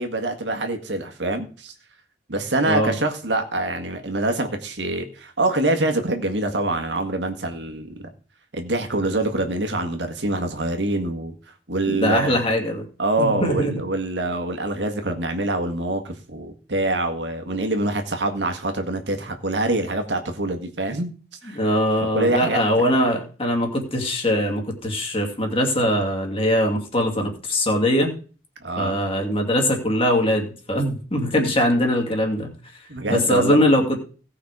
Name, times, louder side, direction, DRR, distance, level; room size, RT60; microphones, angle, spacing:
voice 1, 0.0-1.7 2.3-8.0 8.5-11.3 11.7-12.5 13.0-21.1 21.4-21.6 22.1-22.9 28.6-29.0 32.9-33.7, right 2 dB, 90° right, 5 dB, 1.8 m, -25 dB
voice 2, 11.9-12.8 13.2-13.7 21.5-28.1 28.8-32.5 33.1-34.0, equal, 30° left, 2 dB, 2.4 m, -21 dB
17.0 x 5.8 x 4.9 m, 0.38 s
head